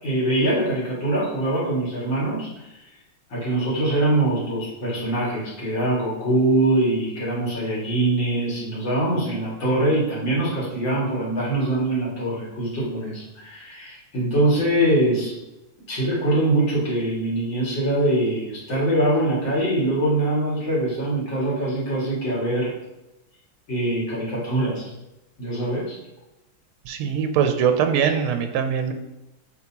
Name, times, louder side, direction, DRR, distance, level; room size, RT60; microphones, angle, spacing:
voice 1, 0.0-2.5 3.3-15.3 15.9-22.7 23.7-24.9 25.4-26.0, right 1 dB, 60° left, -6 dB, 3.0 m, -23 dB
voice 2, 26.8-28.9, right 7 dB, 85° right, 7 dB, 1.6 m, -22 dB
8.2 x 4.8 x 2.9 m, 0.96 s
omnidirectional pair, 2.4 m